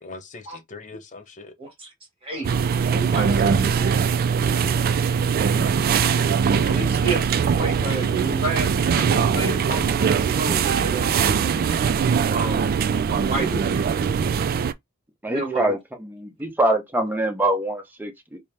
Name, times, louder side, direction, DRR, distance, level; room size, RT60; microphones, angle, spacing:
voice 1, 0.0-1.5 3.2-3.9 4.5-4.8 14.3-14.4, left 3 dB, 35° left, 0.7 m, -41 dB
voice 2, 1.6-1.9 2.2-2.5 2.9-3.7 6.6-11.4 12.3-12.7 13.2-13.7 15.3-15.7, right 3 dB, 25° right, 1.7 m, -30 dB
sound 1, 2.4-14.7, right 6 dB, 45° right, 0.3 m, -21 dB
voice 3, 15.2-18.4, right 1 dB, 10° right, 0.8 m, -24 dB
4.2 x 2.1 x 3.3 m
head